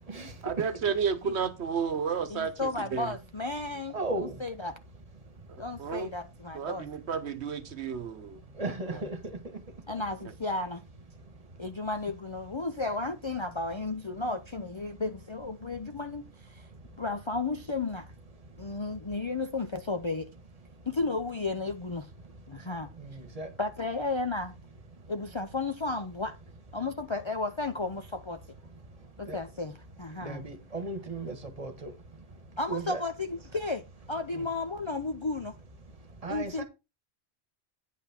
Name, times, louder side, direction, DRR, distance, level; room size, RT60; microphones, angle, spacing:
voice 1, 0.4-3.1 5.8-6.1 6.5-8.4 8.9-9.0, right 6 dB, 75° right, 1.2 m, -32 dB
voice 2, 2.3-4.7 5.6-6.9 8.9-9.1 9.9-10.8 11.6-16.7 17.0-18.1 18.6-20.3 20.9-22.1 22.5-22.9 23.6-24.5 25.1-26.3 26.7-28.4 29.2-30.5 32.6-33.8 34.1-35.5 36.3-36.6, left 3 dB, 35° left, 0.5 m, -33 dB
voice 3, 3.9-4.4 8.6-9.2 23.0-23.5 29.3-29.4 30.2-31.9 32.7-33.0 34.3-34.5 36.2-36.6, right 2 dB, 35° right, 1.4 m, -35 dB
9.4 x 5.8 x 4.3 m
omnidirectional pair, 1.1 m